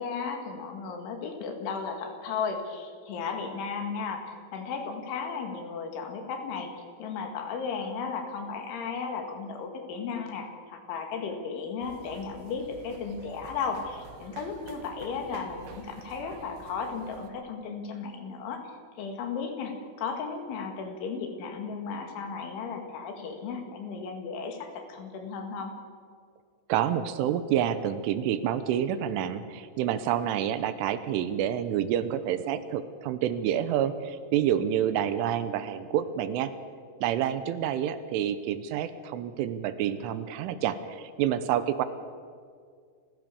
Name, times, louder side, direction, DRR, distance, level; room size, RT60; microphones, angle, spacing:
voice 1, 0.0-6.7 7.0-25.8, left 5 dB, 70° left, 5 dB, 4.5 m, -35 dB
sound 1, 11.8-17.3, right 5 dB, 65° right, 3.1 m, -48 dB
voice 2, 26.7-36.5 37.0-41.9, right 10 dB, 80° right, 12 dB, 3.3 m, -28 dB
29.0 x 15.5 x 6.9 m, 2.1 s
omnidirectional pair, 5.8 m